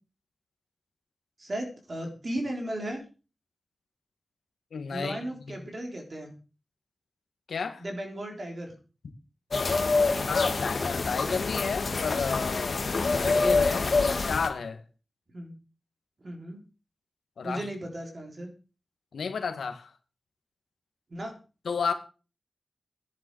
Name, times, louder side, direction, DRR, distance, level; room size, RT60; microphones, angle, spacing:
voice 1, 1.4-3.0 4.9-6.3 7.8-8.7 15.3-15.5 16.2-16.6 17.4-18.5 21.1-21.3, right 1 dB, 35° right, 3.6 m, -35 dB
voice 2, 4.7-5.6 7.5-7.8 10.3-12.8 13.2-14.8 17.4-17.7 19.1-19.9 21.6-21.9, left 5 dB, 85° left, 1.8 m, -32 dB
sound 1, 9.5-14.5, left 3 dB, 45° left, 1.5 m, -26 dB
13.0 x 10.5 x 4.7 m
wide cardioid pair, 160°, 0 cm